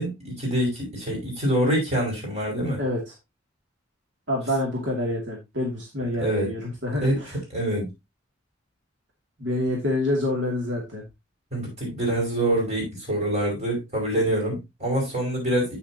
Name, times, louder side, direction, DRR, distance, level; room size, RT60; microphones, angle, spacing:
voice 1, 0.0-2.8 6.2-6.5 7.0-7.2 7.5-7.9 11.5-15.8, right 1 dB, 35° right, 5.2 m, -25 dB
voice 2, 2.8-3.1 4.3-7.4 9.4-11.0, left 1 dB, 70° right, 2.4 m, -27 dB
8.9 x 7.3 x 2.8 m
head